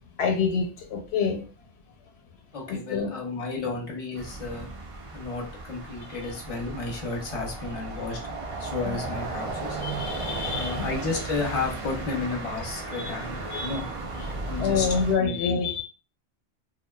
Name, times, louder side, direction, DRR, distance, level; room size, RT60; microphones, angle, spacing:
voice 1, 0.2-1.4 2.7-3.1 8.8-9.0 9.8-10.8 12.9-13.1 13.4-13.8 14.2-15.8, left 5 dB, 90° left, 2 dB, 0.9 m, -27 dB
voice 2, 2.5-4.7 5.1-8.2 8.6-9.8 10.5-13.9 14.5-14.9 15.2-15.3, left 3 dB, 40° left, -1 dB, 0.7 m, -32 dB
sound 1, 4.2-15.1, right 3 dB, 50° right, 0.4 m, -35 dB
2.5 x 2.3 x 2.2 m, 0.38 s
omnidirectional pair, 1.1 m